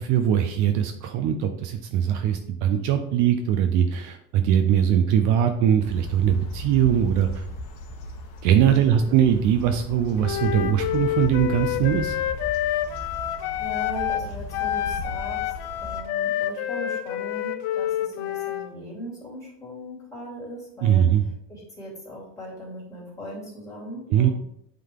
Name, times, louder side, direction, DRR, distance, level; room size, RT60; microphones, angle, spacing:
voice 1, 0.0-7.4 8.4-12.2 20.8-21.2 24.1-24.3, right 9 dB, 55° right, 7 dB, 0.6 m, -21 dB
sound 1, 5.8-16.0, left 2 dB, 55° left, 1.1 m, -37 dB
Wind instrument woodwind instrument, 10.2-14.3 14.5-18.7, left 12 dB, 70° left, 0.6 m, -28 dB
voice 2, 13.6-15.5 15.8-24.3, equal, 10° left, -7 dB, 2.8 m, -39 dB
8.4 x 3.9 x 3.7 m, 0.72 s
cardioid pair, 170°, 37 cm